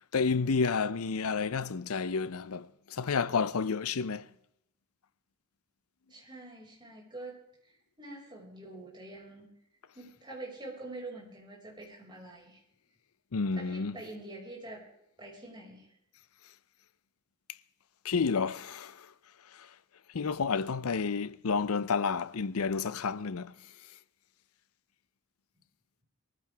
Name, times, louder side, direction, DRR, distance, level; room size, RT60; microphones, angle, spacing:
voice 1, 0.1-4.3 13.3-14.0 18.0-19.1 19.5-19.7 20.1-23.5, left 5 dB, 90° left, 0.6 m, -30 dB
voice 2, 6.1-9.5 9.9-12.6 13.5-14.8 15.2-15.9, right 2 dB, 20° right, 5.6 m, -46 dB
22.5 x 14.5 x 3.5 m
head